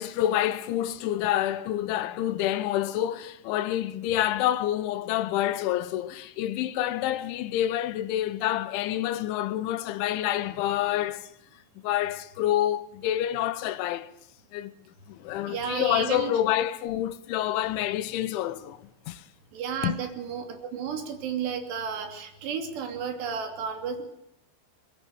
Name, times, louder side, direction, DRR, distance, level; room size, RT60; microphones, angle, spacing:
voice 1, 0.0-11.3 11.8-14.1 14.5-14.7 15.1-18.8 19.1-19.2 19.8-20.0, left 12 dB, 80° left, 3.3 m, -27 dB
voice 2, 15.5-16.3 19.5-24.0, right 7 dB, 60° right, 4.9 m, -32 dB
22.5 x 19.0 x 8.1 m
omnidirectional pair, 5.6 m